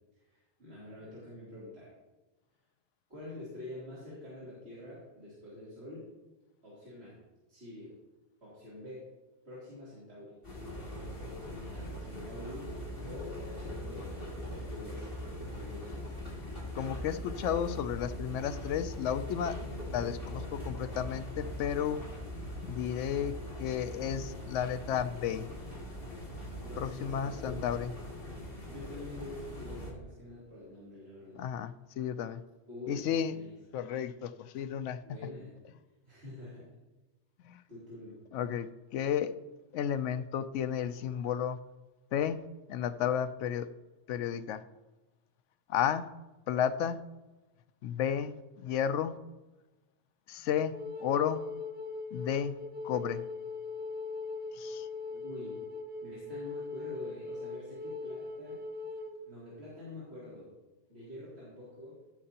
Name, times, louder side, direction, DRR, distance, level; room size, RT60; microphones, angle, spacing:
voice 1, 0.3-1.9 3.1-6.1 6.6-7.2 7.5-7.9 8.4-9.1 9.4-10.4 10.8-11.4 11.7-12.7 13.0-14.1 14.5-15.1 15.3-15.9 26.6-27.6 28.7-31.4 32.7-33.5 35.0-35.5 36.0-36.6 37.7-38.2 55.1-55.6 56.0-58.6 59.3-60.5 60.9-62.0, left 1 dB, 60° right, -10 dB, 3.4 m, -46 dB
sound 1, 10.4-29.9, left 1 dB, 50° left, 2.8 m, -42 dB
Musical instrument, 12.4-24.5, equal, 40° right, 1.1 m, -46 dB
voice 2, 16.7-22.0 22.6-25.5 26.8-27.9 31.3-32.4 32.9-33.4 33.7-35.0 37.4-37.6 38.3-39.3 39.7-41.6 42.1-43.7 44.1-44.6 45.7-46.1 46.5-47.0 47.8-49.2 50.3-50.7 51.0-51.4 52.1-52.6 52.8-53.2 54.5-54.9, left 9 dB, 80° left, 11 dB, 0.9 m, -33 dB
Wind instrument woodwind instrument, 50.7-59.2, left 3 dB, 10° right, 0.5 m, -40 dB
16.0 x 6.6 x 2.9 m, 1.1 s
omnidirectional pair, 1.2 m